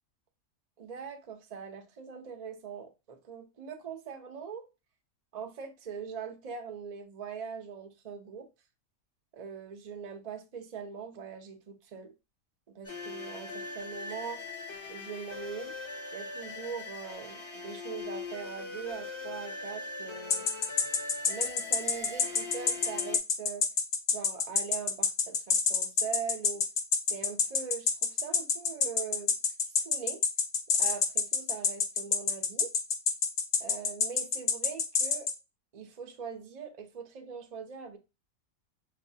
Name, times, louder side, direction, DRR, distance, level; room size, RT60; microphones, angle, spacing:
voice 1, 0.8-4.7 5.3-8.5 9.3-12.1 12.7-14.4 14.9-15.7 16.1-20.5 21.3-23.7 24.1-26.7 27.1-29.3 29.8-30.2 30.8-32.7 33.6-35.3 35.7-38.0, right 6 dB, 45° right, 0.5 m, -41 dB
sound 1, 12.8-23.2, left 3 dB, 25° left, 0.7 m, -41 dB
sound 2, 20.3-35.3, left 6 dB, 60° left, 0.9 m, -27 dB
5.5 x 2.5 x 2.6 m
omnidirectional pair, 1.5 m